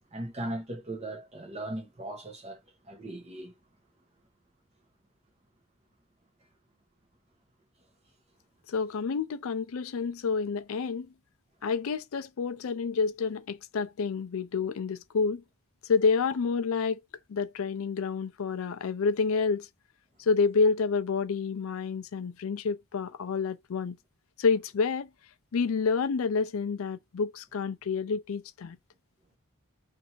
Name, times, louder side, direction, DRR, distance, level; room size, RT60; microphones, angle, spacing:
voice 1, 0.1-2.6 2.8-3.5, right 1 dB, 30° right, 0.8 m, -38 dB
voice 2, 8.7-11.1 11.6-15.4 15.8-17.0 17.3-19.7 20.2-24.0 24.4-25.1 25.5-28.8, left 5 dB, 65° left, 0.4 m, -28 dB
2.7 x 2.6 x 4.3 m
head